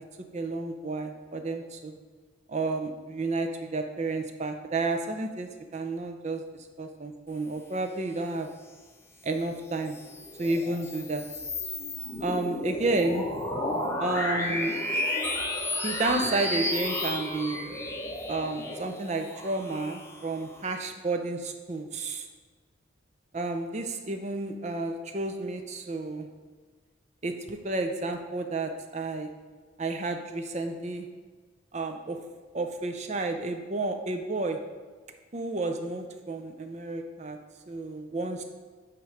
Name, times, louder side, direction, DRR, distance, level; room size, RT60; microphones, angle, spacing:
voice 1, 0.3-2.0 2.5-6.4 6.8-8.5 9.2-10.0 10.4-11.3 12.2-13.3 14.0-15.1 15.8-17.7 18.3-22.3 23.3-26.3 27.2-29.3 29.8-31.1 31.7-32.2 32.5-34.6 35.3-37.4 37.7-38.4, right 2 dB, 35° right, 5 dB, 0.5 m, -31 dB
sound 1, 9.7-20.6, left 1 dB, 15° left, 0.7 m, -33 dB
8.8 x 3.1 x 4.9 m, 1.4 s
head